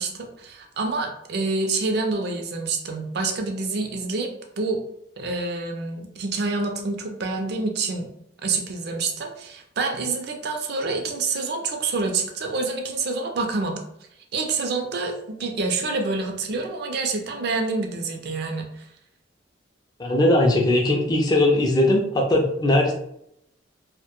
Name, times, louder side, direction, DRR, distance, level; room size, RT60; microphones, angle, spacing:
voice 1, 0.0-4.3 4.6-4.8 5.2-8.1 8.4-13.8 14.3-18.8, right 3 dB, 60° right, 3 dB, 0.4 m, -27 dB
voice 2, 20.0-22.9, left 1 dB, 20° left, 0 dB, 0.3 m, -19 dB
2.1 x 2.1 x 2.9 m, 0.75 s
head